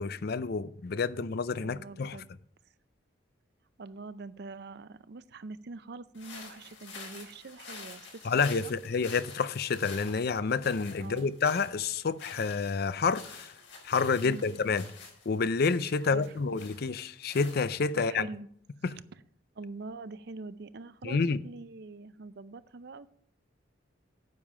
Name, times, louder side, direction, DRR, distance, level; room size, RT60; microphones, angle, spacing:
voice 1, 0.0-2.2 8.2-13.5 13.8-14.9 15.3-18.3 18.8-18.9 21.0-21.4, left 5 dB, 55° left, 0.5 m, -29 dB
voice 2, 1.6-2.3 3.8-8.7 11.0-11.3 14.2-14.6 16.0-16.3 18.0-18.5 19.6-23.1, right 3 dB, 60° right, 0.5 m, -44 dB
sound 1, 6.1-18.1, left 4 dB, 75° left, 4.5 m, -49 dB
9.5 x 7.4 x 4.9 m
head